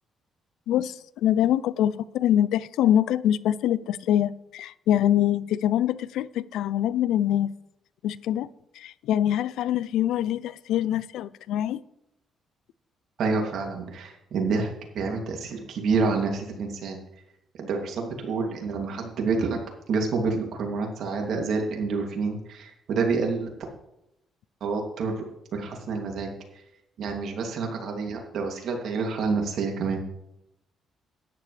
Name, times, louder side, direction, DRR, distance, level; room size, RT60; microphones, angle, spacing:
voice 1, 1.2-7.5 8.0-8.5 8.8-11.8, left 11 dB, 85° left, 0.4 m, -24 dB
voice 2, 13.2-14.7 14.9-17.0 17.6-19.6 19.9-23.5 24.6-25.2 25.5-26.3 27.0-30.0, right 4 dB, 70° right, 2.7 m, -28 dB
13.0 x 10.0 x 3.3 m
cardioid pair, 90°, 0 cm